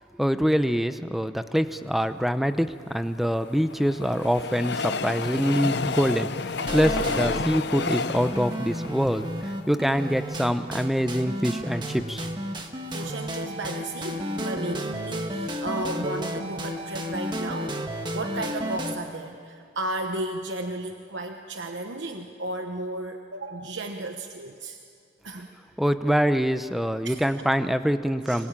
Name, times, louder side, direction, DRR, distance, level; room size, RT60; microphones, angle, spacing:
voice 1, 0.2-12.3 25.8-28.5, equal, ahead, 10 dB, 0.6 m, -25 dB
Train, 2.9-10.2 10.7-10.8 11.0-11.1, left 4 dB, 65° left, 0.6 m, -31 dB
sound 1, 6.6-19.0, equal, 25° right, 1.5 m, -32 dB
voice 2, 12.9-17.8 18.1-24.8 25.2-25.5 27.0-27.2 28.3-28.5, right 2 dB, 80° right, 5 dB, 1.1 m, -34 dB
25.5 x 21.0 x 8.9 m, 2.4 s
head